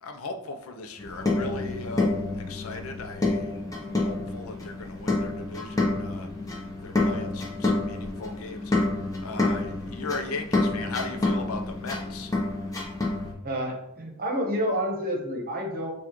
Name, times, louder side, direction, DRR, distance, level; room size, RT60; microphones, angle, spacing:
voice 1, 0.0-6.3 6.8-8.7 9.2-12.3, left 3 dB, 75° left, 5 dB, 0.5 m, -38 dB
sound 1, 1.0-13.3, left 2 dB, 15° left, 0.7 m, -28 dB
voice 2, 13.4-15.9, equal, 40° right, 0 dB, 1.0 m, -29 dB
7.0 x 2.4 x 3.0 m, 0.84 s
head